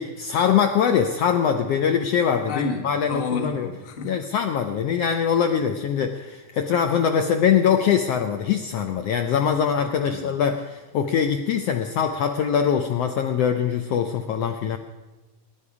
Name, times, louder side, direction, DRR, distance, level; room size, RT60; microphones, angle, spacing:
voice 1, 0.0-3.7 4.0-14.8, left 7 dB, 75° left, 5 dB, 1.5 m, -23 dB
voice 2, 2.5-4.2 10.0-10.4, left 4 dB, 30° left, 3 dB, 1.0 m, -30 dB
21.5 x 10.5 x 4.9 m, 1.2 s
omnidirectional pair, 3.4 m